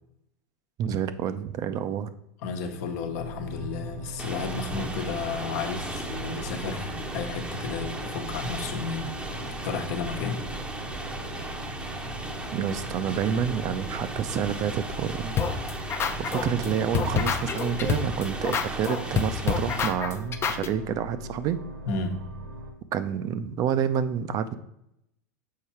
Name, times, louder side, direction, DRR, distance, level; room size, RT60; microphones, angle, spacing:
voice 1, 0.8-2.1 12.5-15.4 16.2-21.6 22.9-24.5, right 8 dB, 40° right, 12 dB, 0.5 m, -28 dB
voice 2, 2.4-9.1 9.6-10.4 21.9-22.2, left 4 dB, 65° left, 6 dB, 1.1 m, -32 dB
sound 1, 3.1-22.7, right 1 dB, 75° right, 1.4 m, -41 dB
sound 2, 4.2-19.9, right 2 dB, 10° right, 0.8 m, -36 dB
sound 3, 15.4-16.7 16.9-20.7, left 7 dB, 25° left, 0.6 m, -27 dB
6.7 x 4.5 x 4.3 m, 0.79 s
hypercardioid pair, 110°, 9 cm